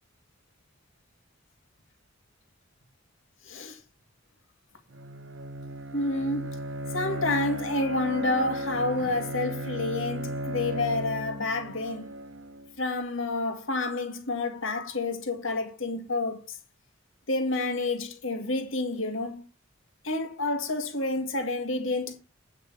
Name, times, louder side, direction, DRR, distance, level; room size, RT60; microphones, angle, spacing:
voice 1, 3.5-3.8 5.9-6.5 6.9-12.1 12.8-16.6 17.3-19.4 20.0-22.2, left 2 dB, 70° left, 2.0 m, -29 dB
Bowed string instrument, 4.9-12.7, right 1 dB, 65° right, 0.8 m, -35 dB
9.4 x 5.9 x 5.8 m
head